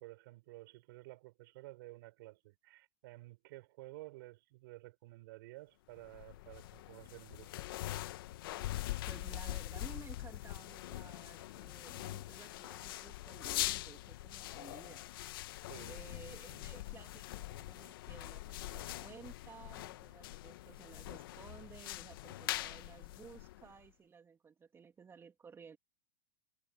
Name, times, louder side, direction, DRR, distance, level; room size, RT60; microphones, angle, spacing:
voice 1, 0.0-7.6 15.7-16.0 16.5-16.6, right 20 dB, 65° right, 5.6 m, -53 dB
sound 1, 6.0-23.9, left 16 dB, 70° left, 1.7 m, -43 dB
voice 2, 9.0-15.1 15.9-25.8, right 6 dB, 20° right, 3.0 m, -55 dB
hypercardioid pair, 120°, 12 cm